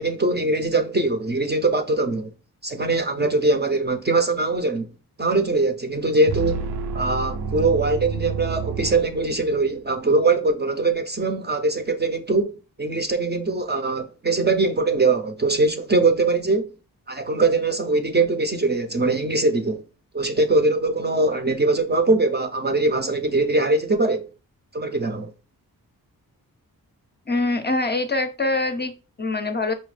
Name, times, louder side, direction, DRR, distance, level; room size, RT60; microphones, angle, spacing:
voice 1, 0.0-2.3 2.6-4.9 5.2-6.6 6.9-16.7 17.1-19.8 20.1-24.3 24.7-25.3, right 3 dB, 30° right, 0.5 m, -22 dB
sound 1, 6.3-9.7, right 5 dB, 85° right, 0.5 m, -29 dB
voice 2, 27.3-29.7, left 2 dB, 25° left, 0.5 m, -24 dB
4.9 x 2.2 x 3.2 m
wide cardioid pair, 80°, 38 cm